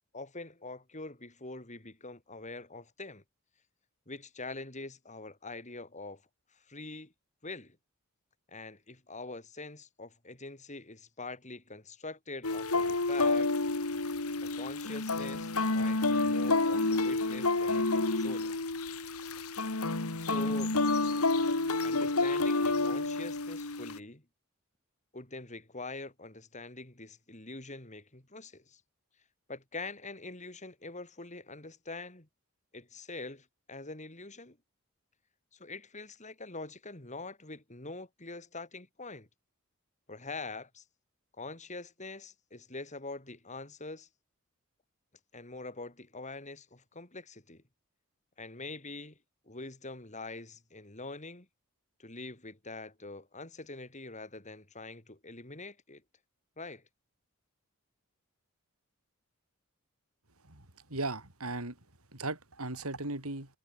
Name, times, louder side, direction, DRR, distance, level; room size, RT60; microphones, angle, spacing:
voice 1, 0.1-3.2 4.1-6.2 6.5-7.1 7.4-7.8 8.5-13.5 14.4-18.6 20.2-20.8 21.8-24.2 25.1-28.8 29.5-32.3 32.7-34.6 35.5-39.3 40.1-40.8 41.4-44.1 45.3-47.6 48.4-49.2 49.4-51.5 52.0-56.0 56.6-56.8, left 3 dB, 35° left, 4.5 m, -44 dB
sound 1, 12.4-24.0, left 3 dB, 85° left, 2.3 m, -29 dB
voice 2, 60.9-61.7 62.1-63.5, right 2 dB, 85° right, 5.6 m, -36 dB
head